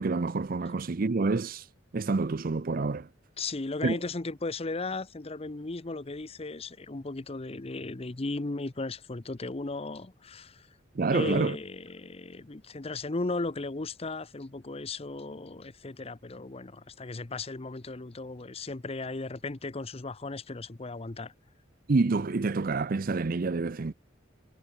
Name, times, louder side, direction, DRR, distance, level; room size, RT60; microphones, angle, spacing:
voice 1, 0.0-1.7 1.9-3.1 3.8-4.0 10.9-11.6 21.9-23.9, right 3 dB, 45° right, 0.5 m, -27 dB
voice 2, 3.4-10.7 11.1-21.3, left 3 dB, 30° left, 0.7 m, -36 dB
head